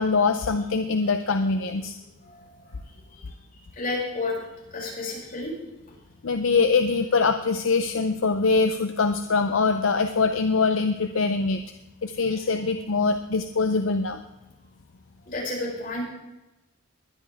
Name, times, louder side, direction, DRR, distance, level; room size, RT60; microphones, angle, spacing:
voice 1, 0.0-1.9 6.2-11.6 12.0-14.2, left 4 dB, 70° left, 7 dB, 0.6 m, -23 dB
voice 2, 2.2-2.6 3.1-3.2 3.8-4.3 4.7-5.6 15.3-16.1, left 2 dB, 40° left, -6 dB, 6.3 m, -31 dB
20.5 x 11.0 x 3.5 m, 0.99 s
head